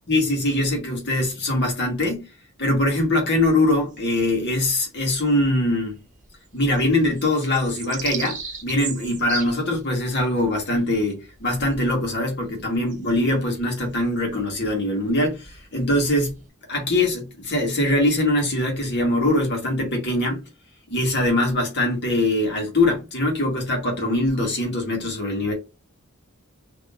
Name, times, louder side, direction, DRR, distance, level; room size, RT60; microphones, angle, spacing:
voice 1, 0.1-2.3 2.6-5.9 6.5-16.3 16.7-20.4 20.9-25.5, left 1 dB, 55° left, 1.6 m, -22 dB
sound 1, 3.9-5.0 5.4-5.5 5.7-16.4, right 6 dB, 35° right, 1.1 m, -38 dB
3.8 x 3.0 x 2.6 m
head